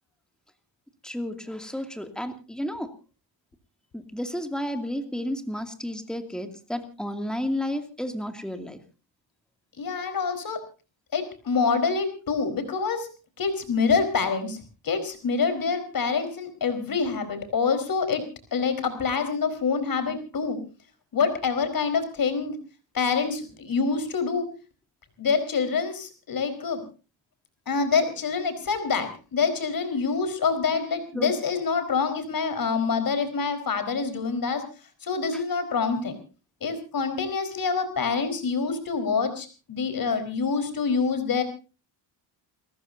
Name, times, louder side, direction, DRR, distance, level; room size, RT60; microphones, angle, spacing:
voice 1, 1.0-2.9 3.9-8.8 31.1-31.3 35.3-35.4, left 1 dB, ahead, 6 dB, 2.5 m, -32 dB
voice 2, 9.8-10.6 11.1-13.1 13.4-14.6 14.8-18.2 18.5-20.6 21.1-22.6 22.9-24.5 25.2-26.8 27.7-34.6 35.0-36.2 36.6-41.4, left 5 dB, 50° left, 9 dB, 4.5 m, -26 dB
30.0 x 14.0 x 2.7 m, 0.34 s
cardioid pair, 130°, 44 cm